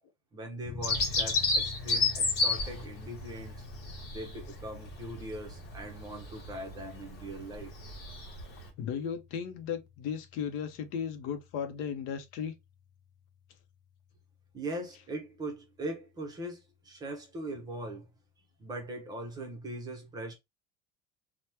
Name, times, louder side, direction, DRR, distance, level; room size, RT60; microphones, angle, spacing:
voice 1, 0.3-3.5 4.1-7.7 14.5-18.1 18.6-20.3, right 1 dB, 20° right, 0.6 m, -40 dB
sound 1, 0.6-15.1, left 7 dB, 20° left, 0.3 m, -50 dB
Bird vocalization bird call bird song, 0.8-8.7, left 3 dB, 50° left, 1.2 m, -32 dB
voice 2, 8.8-12.5, left 7 dB, 70° left, 0.6 m, -35 dB
2.9 x 2.1 x 3.2 m
cardioid pair, 180°, 21 cm